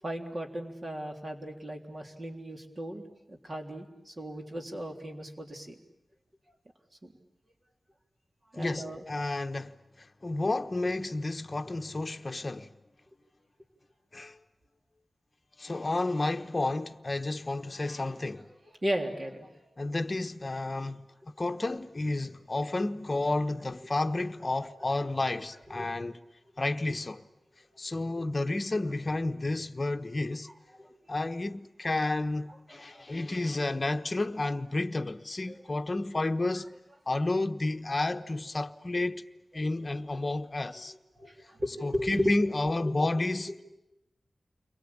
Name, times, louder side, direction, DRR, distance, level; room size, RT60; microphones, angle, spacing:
voice 1, 0.0-5.8 7.0-7.1 8.5-9.1 18.8-19.5 25.7-25.9 28.1-28.2 28.5-28.6 30.8-31.0 32.7-33.0 35.5-35.6 41.2-42.3 42.8-43.0, equal, 40° right, 3.5 m, -36 dB
voice 2, 8.6-12.7 14.1-14.4 15.6-18.5 19.8-21.1 21.4-26.2 26.6-27.2 27.8-30.5 31.1-36.7 37.1-39.2 39.5-40.9 41.8-43.5, left 2 dB, 35° left, 1.1 m, -31 dB
30.0 x 23.0 x 8.7 m
wide cardioid pair, 95°, 0 cm